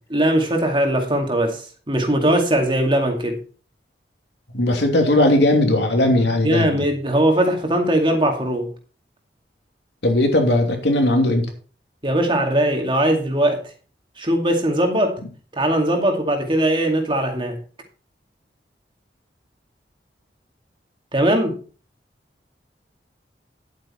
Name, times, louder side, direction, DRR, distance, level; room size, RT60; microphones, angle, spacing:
voice 1, 0.1-3.4 6.4-8.7 12.0-13.6 14.2-15.2 15.5-17.6 21.1-21.6, right 1 dB, 30° right, 2.3 m, -20 dB
voice 2, 4.5-6.9 10.0-11.5, left 1 dB, 75° left, 2.9 m, -18 dB
11.0 x 8.7 x 4.4 m
head